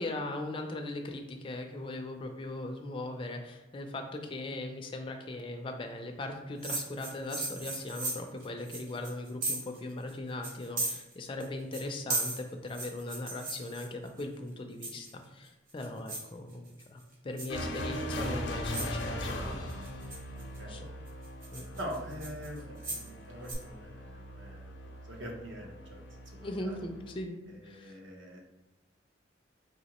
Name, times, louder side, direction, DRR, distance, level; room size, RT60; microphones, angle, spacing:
voice 1, 0.0-20.1 20.7-20.8 21.5-21.8 26.4-28.0, left 2 dB, 25° left, 4 dB, 0.3 m, -39 dB
sound 1, 6.6-9.8 10.1-10.2 10.4-11.5 11.7-14.2 14.8-15.2 15.7-16.3 16.7-17.0 17.4-17.6 18.3-18.4 18.7-19.0 19.7-20.6 21.1-23.1 23.4-23.5, right 2 dB, 45° right, 1.1 m, -36 dB
sound 2, 17.5-27.2, equal, 75° left, 0.6 m, -40 dB
voice 2, 20.3-20.9 21.8-24.7 25.1-26.0 26.3-26.8 27.5-28.4, equal, 75° right, 0 dB, 0.8 m, -44 dB
4.0 x 2.8 x 2.9 m, 1.1 s
head